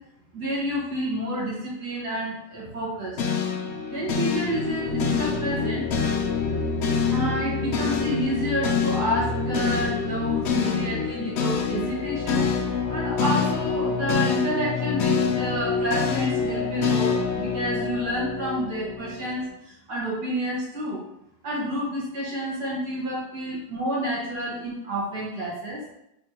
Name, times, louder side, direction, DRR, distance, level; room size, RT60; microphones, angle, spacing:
voice 1, 0.3-3.2 3.9-5.8 7.1-12.5 12.9-21.0 21.4-25.8, equal, 70° right, -6 dB, 2.0 m, -29 dB
sound 1, 3.2-19.5, left 5 dB, 85° left, 0.5 m, -26 dB
4.4 x 3.9 x 2.9 m, 0.83 s
omnidirectional pair, 1.8 m